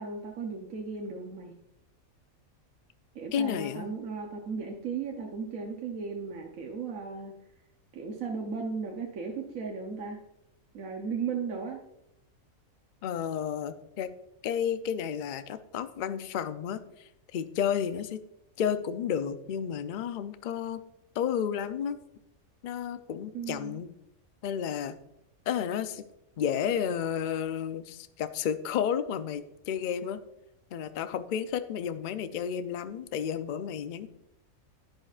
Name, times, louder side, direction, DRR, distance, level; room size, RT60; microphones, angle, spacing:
voice 1, 0.0-1.5 3.1-7.3 7.9-10.2 10.7-11.8 23.3-23.8, right 5 dB, 70° right, 0 dB, 1.3 m, -36 dB
voice 2, 3.3-3.9 13.0-14.1 14.4-18.2 18.6-20.8 21.1-22.0 22.6-23.9 24.4-25.0 25.5-26.0 26.4-30.2 30.7-34.1, left 8 dB, 60° left, 11 dB, 0.5 m, -32 dB
11.0 x 10.5 x 2.5 m, 0.85 s
omnidirectional pair, 1.5 m